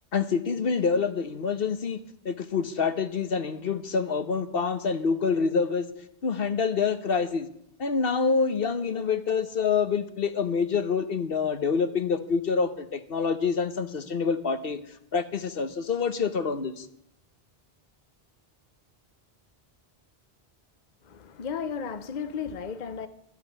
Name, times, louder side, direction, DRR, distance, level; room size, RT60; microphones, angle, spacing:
voice 1, 0.1-2.0 2.2-5.9 6.2-7.5 7.8-14.8 15.1-16.9, left 5 dB, 65° left, 1.2 m, -26 dB
voice 2, 21.0-23.1, left 6 dB, 50° left, 0.8 m, -34 dB
13.0 x 8.8 x 9.4 m
omnidirectional pair, 1.0 m